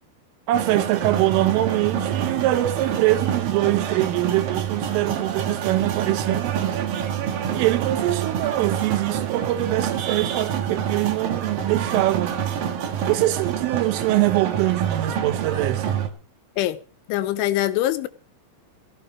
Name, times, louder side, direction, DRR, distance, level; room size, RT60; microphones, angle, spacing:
sound 1, 0.5-16.1, right 9 dB, 60° right, 2.9 m, -27 dB
voice 1, 0.5-6.8 7.5-12.4 13.1-16.0, right 16 dB, 85° right, 3.7 m, -23 dB
voice 2, 17.1-18.1, left 14 dB, 80° left, 3.3 m, -23 dB
17.5 x 15.0 x 4.5 m
omnidirectional pair, 5.7 m